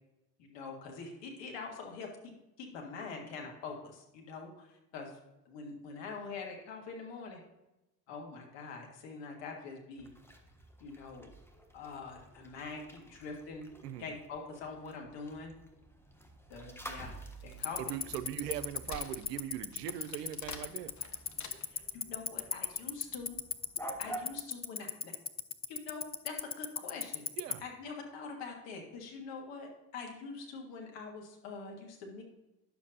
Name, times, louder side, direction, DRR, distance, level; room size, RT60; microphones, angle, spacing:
voice 1, 0.4-2.3 2.6-5.2 5.5-7.4 8.1-10.1 10.8-11.3 11.7-13.7 14.0-15.5 16.5-17.9 21.7-23.4 24.0-25.1 25.7-27.3 27.6-32.2, left 4 dB, 65° left, 1 dB, 1.8 m, -44 dB
sound 1, 10.0-24.4, right 1 dB, 5° left, 1.3 m, -50 dB
Wood, 17.2-21.9, left 5 dB, 35° left, 1.0 m, -50 dB
Tick-tock, 17.6-27.5, left 7 dB, 20° left, 0.5 m, -33 dB
voice 2, 17.8-20.9 27.4-27.6, right 11 dB, 85° right, 12 dB, 0.5 m, -40 dB
10.0 x 7.1 x 2.7 m, 0.98 s
hypercardioid pair, 50°, 47 cm